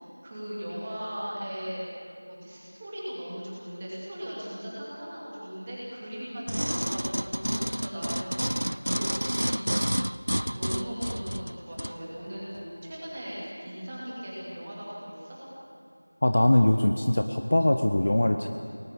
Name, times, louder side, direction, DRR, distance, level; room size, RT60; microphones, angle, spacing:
voice 1, 0.0-1.8 2.3-9.0 9.3-9.5 10.1-15.4, equal, 10° right, -7 dB, 2.5 m, -38 dB
sound 1, 6.5-12.0 12.5-12.6, equal, 90° right, 0.7 m, -29 dB
voice 2, 16.2-18.5, left 1 dB, 25° left, 6 dB, 0.6 m, -22 dB
29.5 x 20.0 x 7.1 m, 2.6 s
figure-of-eight pair, 180°, 0 cm